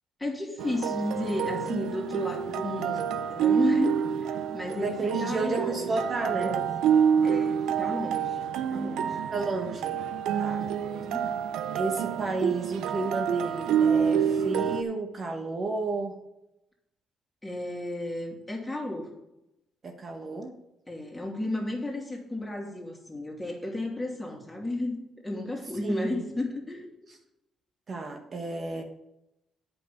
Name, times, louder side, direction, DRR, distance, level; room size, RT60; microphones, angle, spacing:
voice 1, 0.2-7.0 7.2-9.2 10.8-11.3 17.4-19.1 20.9-26.9, left 2 dB, 10° left, 0 dB, 2.8 m, -33 dB
sound 1, 0.6-14.8, right 8 dB, 85° right, 0.6 m, -27 dB
voice 2, 4.8-6.5 9.3-10.0 10.4-10.6 11.7-16.2 19.8-20.6 25.8-26.2 27.1-27.2 27.9-28.8, right 3 dB, 45° right, 3 dB, 1.4 m, -32 dB
9.0 x 5.5 x 7.2 m, 0.88 s
cardioid pair, 90°, 0 cm